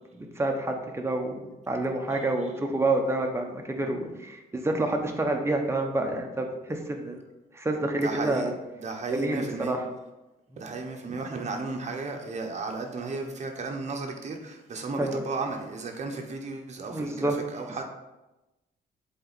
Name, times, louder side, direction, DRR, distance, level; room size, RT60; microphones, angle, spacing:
voice 1, 0.1-7.2 7.5-8.5 9.1-9.8 15.0-15.2 16.9-17.3, right 2 dB, 15° right, 3 dB, 0.9 m, -28 dB
voice 2, 7.9-8.5 8.8-9.8 10.6-17.8, right 3 dB, 45° right, 2 dB, 1.0 m, -34 dB
7.5 x 3.9 x 4.2 m, 1.0 s
cardioid pair, 120°, 17 cm